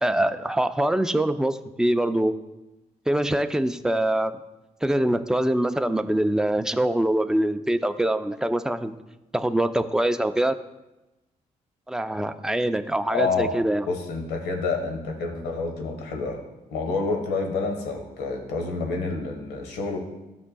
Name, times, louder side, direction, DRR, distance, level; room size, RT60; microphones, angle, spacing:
voice 1, 0.0-2.4 3.1-4.4 4.8-9.0 9.3-10.6 11.9-13.9, right 1 dB, 5° right, 9 dB, 0.6 m, -24 dB
voice 2, 13.1-13.5 13.9-16.4 16.7-20.0, left 4 dB, 80° left, 3 dB, 1.3 m, -28 dB
13.0 x 5.6 x 2.3 m, 1.0 s
supercardioid pair, 50°, 17 cm